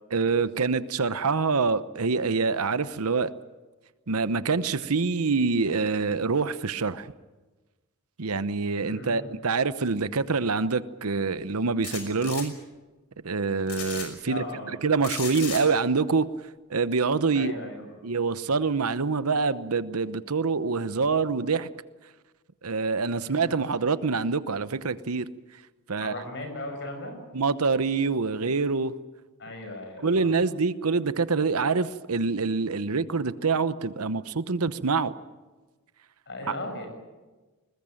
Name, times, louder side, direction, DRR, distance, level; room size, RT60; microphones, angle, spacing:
voice 1, 0.1-3.3 4.1-7.1 8.2-12.6 13.2-14.4 14.8-16.3 16.7-17.5 18.0-21.7 22.6-25.3 25.9-26.1 27.3-28.9 30.0-35.1 36.5-36.6, right 4 dB, 80° right, 14 dB, 0.9 m, -25 dB
voice 2, 8.8-9.3 14.2-14.8 17.3-18.1 23.2-23.6 26.0-27.1 29.4-30.3 36.3-36.9, left 1 dB, 55° left, 5 dB, 6.5 m, -37 dB
sound 1, 11.8-12.4 13.7-14.1 15.0-15.6, left 7 dB, 90° left, 5.9 m, -35 dB
20.5 x 20.5 x 9.0 m, 1.2 s
head